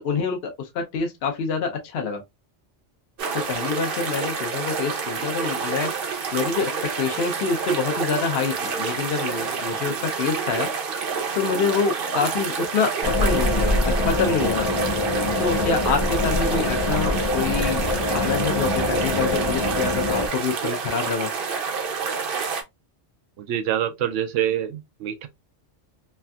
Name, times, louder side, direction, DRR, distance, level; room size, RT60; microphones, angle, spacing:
voice 1, 0.0-2.2 3.3-6.7 7.0-10.7 11.0-14.7 15.4-21.3, left 5 dB, 60° left, 0.8 m, -26 dB
sound 1, 3.2-22.6, right 5 dB, 55° right, 0.8 m, -28 dB
sound 2, 8.6-9.7 11.1-12.7, right 2 dB, 85° left, 1.0 m, -39 dB
sound 3, 13.0-20.3, left 2 dB, 45° left, 0.3 m, -24 dB
voice 2, 23.4-25.3, right 10 dB, 80° right, 0.9 m, -26 dB
3.3 x 2.6 x 2.2 m
omnidirectional pair, 1.3 m